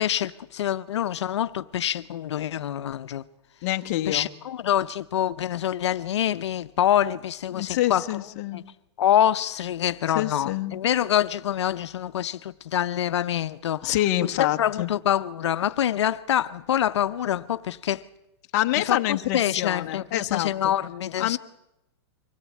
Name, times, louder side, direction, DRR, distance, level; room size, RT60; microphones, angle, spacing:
voice 1, 0.0-3.2 4.1-8.0 8.5-8.6 9.0-14.0 14.2-14.3 14.6-18.0 18.8-21.4, left 11 dB, 80° left, 0.7 m, -26 dB
voice 2, 3.6-4.3 7.5-8.6 10.1-10.8 13.8-14.9 18.5-20.7 21.2-21.4, left 15 dB, 35° left, 1.0 m, -26 dB
24.5 x 17.0 x 8.4 m
supercardioid pair, 165°, 14 cm